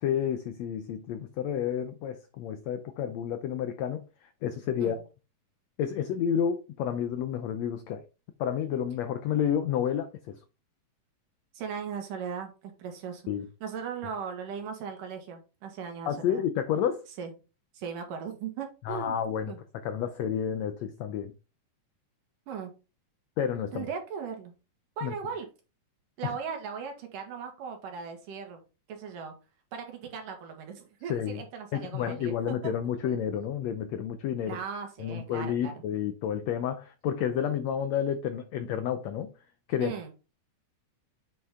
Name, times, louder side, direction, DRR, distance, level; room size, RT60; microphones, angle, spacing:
voice 1, 0.0-4.0 4.4-5.0 5.8-8.0 8.4-10.4 13.3-13.5 16.1-17.1 18.8-19.5 19.8-21.3 23.4-23.8 25.0-25.1 26.2-26.3 31.1-31.4 31.7-34.6 35.0-39.3 39.7-40.1, left 9 dB, 80° left, 1.5 m, -30 dB
voice 2, 11.5-13.2 13.6-16.4 17.2-17.3 17.7-19.2 19.5-19.6 22.5-22.7 23.7-24.5 25.0-25.5 26.2-28.6 28.9-29.3 29.7-32.7 34.4-35.7 39.8-40.1, right 6 dB, 75° right, 3.2 m, -38 dB
8.3 x 5.6 x 3.7 m
omnidirectional pair, 3.9 m